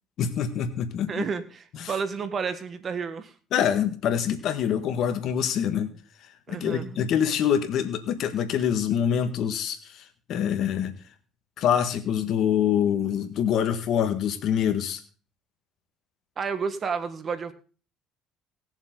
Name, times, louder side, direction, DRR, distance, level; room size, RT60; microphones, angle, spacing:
voice 1, 0.2-1.2 1.7-1.9 3.5-5.9 6.5-10.9 11.6-15.0, left 9 dB, 65° left, 8 dB, 1.7 m, -25 dB
voice 2, 1.1-3.3 6.5-7.0 16.4-17.5, right 5 dB, 40° right, 11 dB, 1.4 m, -31 dB
19.0 x 7.2 x 3.9 m, 0.38 s
supercardioid pair, 85°, 0 cm